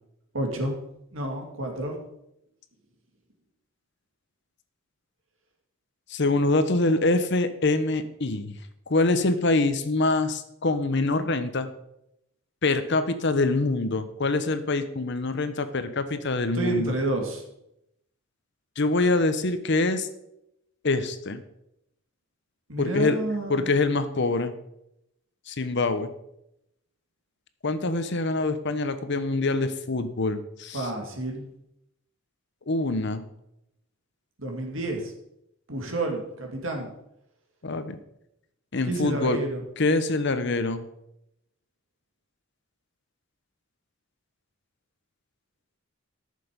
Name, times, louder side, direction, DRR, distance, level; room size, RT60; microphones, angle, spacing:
voice 1, 0.3-0.7 1.1-2.0 16.5-17.4 22.7-23.7 30.7-31.5 34.4-35.1 35.7-36.9 38.8-39.6, right 2 dB, 65° right, 2 dB, 2.4 m, -30 dB
voice 2, 6.1-8.6 8.9-11.7 12.6-16.9 18.8-20.1 20.8-21.4 22.8-23.2 23.5-24.5 25.5-26.1 27.6-30.9 32.7-33.2 37.6-38.0 38.7-39.4 39.8-40.8, left 2 dB, 55° left, 10 dB, 0.9 m, -25 dB
13.5 x 6.8 x 5.2 m, 0.81 s
head